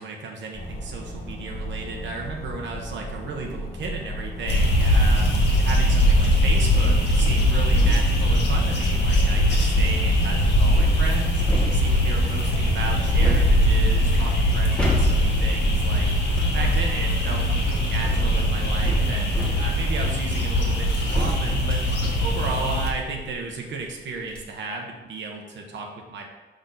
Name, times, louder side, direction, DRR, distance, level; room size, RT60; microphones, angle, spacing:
voice 1, 0.0-11.4 11.7-16.1 16.5-21.9 22.2-26.3, right 3 dB, 75° right, 1 dB, 1.1 m, -34 dB
sound 1, 0.5-18.9, equal, 35° left, 1.1 m, -36 dB
sound 2, 4.5-22.9, equal, 65° left, 1.6 m, -21 dB
sound 3, 7.2-10.1 10.7-12.3 13.2-16.6 17.5-23.4 23.9-24.0 24.2-24.4, equal, 5° left, 1.4 m, -31 dB
6.5 x 6.0 x 4.0 m, 1.2 s
wide cardioid pair, 160°, 19 cm